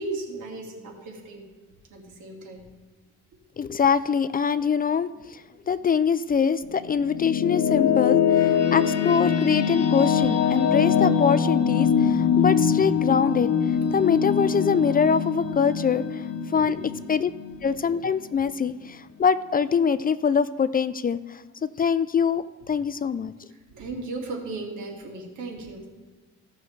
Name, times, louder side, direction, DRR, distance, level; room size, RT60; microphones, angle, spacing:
voice 1, 0.0-1.4 1.9-2.6 16.5-16.8 23.7-25.9, right 3 dB, 80° right, 0 dB, 2.3 m, -35 dB
voice 2, 3.6-16.3 16.5-16.8 17.1-17.3 17.6-23.3, left 6 dB, 30° left, 14 dB, 0.4 m, -24 dB
sound 1, 6.6-17.9, left 7 dB, 60° left, 1.2 m, -23 dB
16.0 x 6.2 x 3.2 m, 1.3 s
cardioid pair, 90°, 30 cm